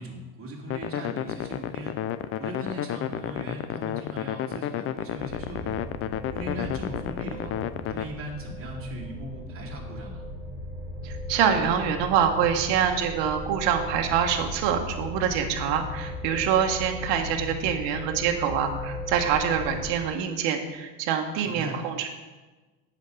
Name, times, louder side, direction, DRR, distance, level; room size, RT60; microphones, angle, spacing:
voice 1, 0.0-2.0 2.4-5.7 6.3-7.5 7.9-10.2 21.4-21.8, equal, 25° right, -3 dB, 3.1 m, -39 dB
sound 1, 0.7-8.1, left 10 dB, 30° left, 0.4 m, -32 dB
sound 2, 5.2-19.9, left 1 dB, 5° left, 3.8 m, -37 dB
voice 2, 11.0-22.1, right 8 dB, 55° right, 4 dB, 1.6 m, -25 dB
8.3 x 6.7 x 6.5 m, 1.2 s
hypercardioid pair, 95°, 50 cm